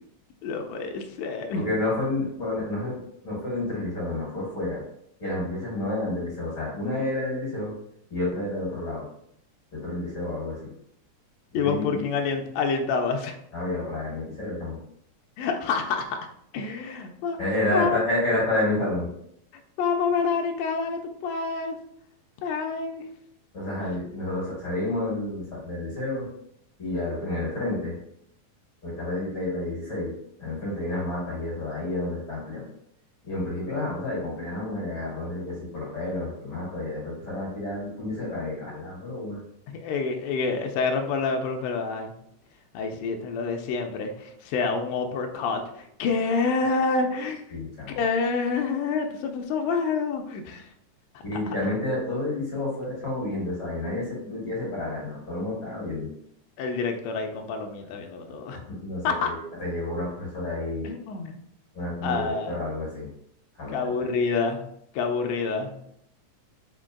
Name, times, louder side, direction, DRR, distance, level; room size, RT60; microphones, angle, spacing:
voice 1, 0.4-1.7 11.5-13.3 15.4-16.2 16.5-17.4 17.7-18.0 19.8-21.8 22.4-23.0 39.7-42.1 42.7-47.6 47.9-50.7 51.5-51.6 56.6-58.6 59.0-59.3 60.8-61.4 62.0-62.6 63.7-64.6 64.9-65.7, left 4 dB, 85° left, 4 dB, 1.5 m, -27 dB
voice 2, 1.6-4.8 5.2-7.7 8.1-9.0 9.7-10.7 11.6-12.0 13.5-14.8 17.4-19.1 23.5-26.3 26.8-28.0 28.8-30.1 30.4-32.7 33.2-39.4 47.5-48.0 51.2-56.1 58.3-60.9 61.7-63.1 63.5-63.9, left 2 dB, 50° left, -6 dB, 2.0 m, -30 dB
5.0 x 2.2 x 3.6 m, 0.71 s
omnidirectional pair, 3.6 m